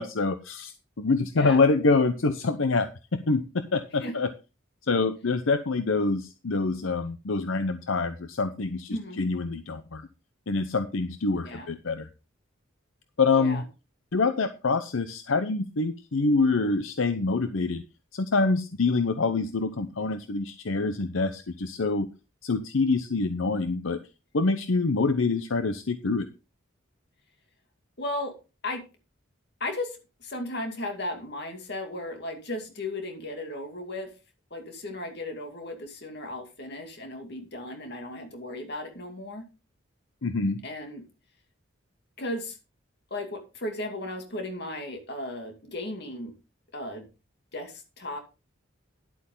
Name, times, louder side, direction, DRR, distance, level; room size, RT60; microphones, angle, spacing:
voice 1, 0.0-4.3 4.9-10.1 10.5-12.1 13.2-13.6 14.1-17.8 18.1-22.1 22.4-24.0 24.3-26.3 40.2-40.6, left 3 dB, 75° left, 10 dB, 0.8 m, -26 dB
voice 2, 8.9-9.2 11.4-11.7 13.3-13.6 28.0-28.4 28.6-28.8 29.6-34.1 34.5-39.5 40.6-41.0 42.2-42.6 43.1-46.3 46.7-47.1 47.5-48.2, left 1 dB, 55° left, 4 dB, 2.4 m, -35 dB
11.0 x 8.3 x 3.8 m, 0.30 s
head